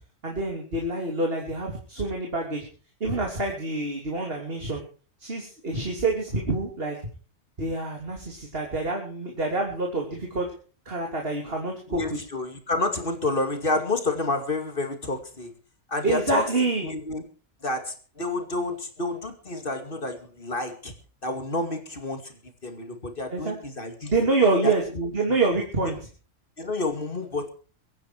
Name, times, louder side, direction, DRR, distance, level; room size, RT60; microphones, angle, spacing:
voice 1, 0.2-2.7 3.0-4.8 5.2-7.0 7.6-10.5 10.8-12.2 16.0-16.9 23.3-23.6 24.1-24.8 25.1-26.0, right 3 dB, 45° right, 1 dB, 3.3 m, -26 dB
voice 2, 11.9-15.5 15.9-16.5 16.8-17.2 17.6-20.9 21.2-22.3 22.6-24.1 24.6-25.1 26.6-27.5, left 2 dB, 45° left, 7 dB, 2.6 m, -29 dB
23.5 x 9.7 x 4.6 m, 0.38 s
omnidirectional pair, 1.3 m